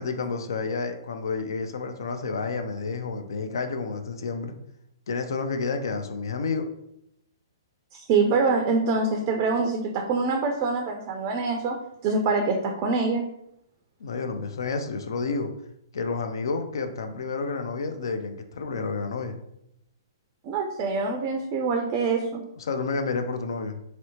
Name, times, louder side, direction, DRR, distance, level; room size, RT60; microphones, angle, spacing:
voice 1, 0.0-4.5 5.1-6.7 14.0-15.5 15.9-19.4 22.6-23.8, left 4 dB, 75° left, 7 dB, 0.4 m, -30 dB
voice 2, 7.9-11.8 12.0-13.2 20.4-22.4, right 4 dB, 35° right, 3 dB, 0.3 m, -25 dB
2.7 x 2.0 x 2.8 m, 0.77 s
hypercardioid pair, 130°, 2 cm